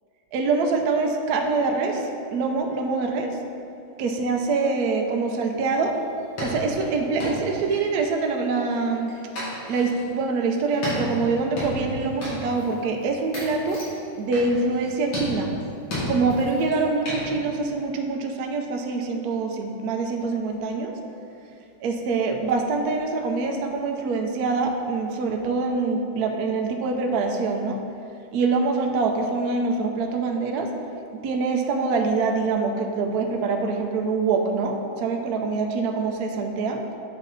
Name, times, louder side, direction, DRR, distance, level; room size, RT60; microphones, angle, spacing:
voice 1, 0.3-3.4 4.0-6.0 6.4-9.1 9.7-13.8 14.2-15.5 16.1-21.0 21.8-27.8 28.3-30.7 31.1-36.8, right 4 dB, 70° right, 3 dB, 0.9 m, -25 dB
sound 1, 6.0-6.1 6.4-8.2 8.7-10.0 10.7-12.7 13.0-13.1 13.3-14.0 14.3-14.9 15.1-16.8 17.1-17.3, left 1 dB, 70° left, 2.7 m, -32 dB
8.1 x 5.6 x 4.0 m, 2.7 s
omnidirectional pair, 2.2 m